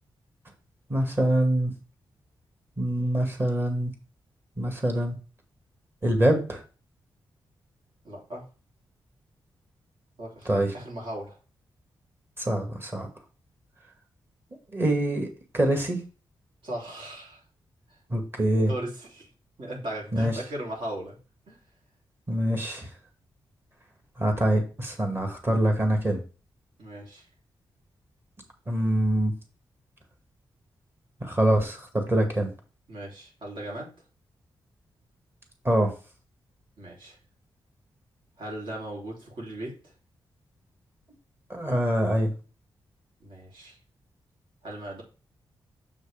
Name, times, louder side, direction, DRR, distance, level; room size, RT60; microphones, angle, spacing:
voice 1, 0.9-1.7 2.8-3.9 4.6-5.2 6.0-6.6 10.5-10.7 12.4-13.1 14.7-15.3 15.5-16.0 18.1-18.7 20.1-20.3 22.3-22.9 24.2-26.2 28.7-29.3 31.2-32.5 35.6-35.9 41.5-42.3, right 1 dB, 25° right, 3 dB, 2.0 m, -24 dB
voice 2, 8.0-8.4 10.2-11.4 16.6-17.4 17.9-18.0 18.7-19.3 19.6-21.2 21.5-21.6 26.8-27.2 32.9-33.9 36.8-37.2 38.4-39.8 43.2-43.8 44.6-45.0, right 1 dB, 65° right, -2 dB, 3.5 m, -37 dB
7.0 x 6.3 x 3.5 m, 0.34 s
wide cardioid pair, 135°, 9 cm